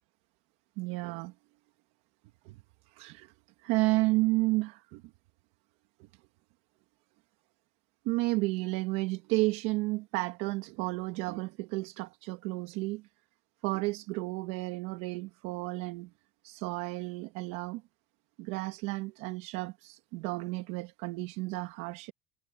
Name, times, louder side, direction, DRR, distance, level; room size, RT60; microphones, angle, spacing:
voice 1, 0.8-1.3 2.4-2.6 2.9-3.3 3.6-5.0 8.0-13.0 13.6-16.1 16.4-17.8 18.4-22.1, right 22 dB, 70° right, 1.7 m, -32 dB
supercardioid pair, 110°, 20 cm